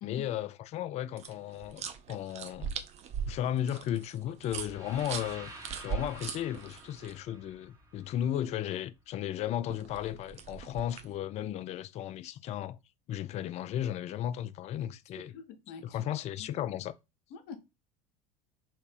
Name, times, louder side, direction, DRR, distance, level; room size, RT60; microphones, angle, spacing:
voice 1, 0.0-2.7 3.3-5.5 5.8-12.8 13.1-15.3 15.9-16.9, left 11 dB, 35° left, 0.4 m, -35 dB
sound 1, 1.2-7.1 9.7-11.2, right 7 dB, 35° right, 0.5 m, -40 dB
sound 2, 4.6-8.6, right 2 dB, 20° right, 1.2 m, -50 dB
voice 2, 15.1-16.1 16.3-16.5 17.3-17.6, left 7 dB, 55° left, 0.8 m, -45 dB
3.1 x 2.9 x 3.3 m
figure-of-eight pair, 70°, 19 cm